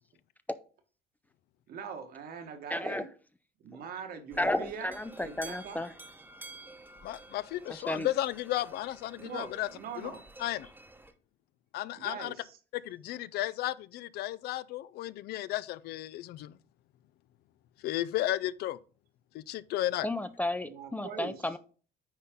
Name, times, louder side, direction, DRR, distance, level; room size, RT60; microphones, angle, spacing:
voice 1, 1.7-3.1 3.6-5.8 9.1-10.2 12.0-12.6 20.6-21.5, right 6 dB, 65° right, 1.4 m, -42 dB
voice 2, 2.7-3.0 4.4-5.9 7.9-8.1 20.0-21.6, left 1 dB, 10° left, 0.4 m, -32 dB
sound 1, 4.3-11.1, right 2 dB, 10° right, 0.9 m, -51 dB
voice 3, 7.0-9.7 10.0-10.1 10.4-10.7 11.7-12.3 12.7-16.5 17.8-18.8 19.3-20.1, left 14 dB, 75° left, 0.4 m, -34 dB
9.6 x 4.1 x 3.6 m
cardioid pair, 110°, 17 cm